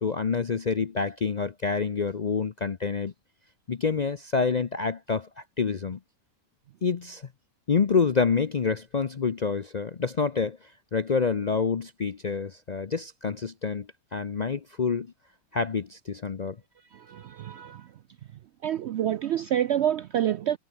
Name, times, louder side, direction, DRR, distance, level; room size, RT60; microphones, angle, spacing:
voice 1, 0.0-3.1 3.7-6.0 6.8-7.3 7.7-15.1 15.5-16.6, left 5 dB, 45° left, 0.5 m, -27 dB
voice 2, 16.9-17.9 18.6-20.6, right 11 dB, 70° right, 0.6 m, -27 dB
omnidirectional pair, 1.6 m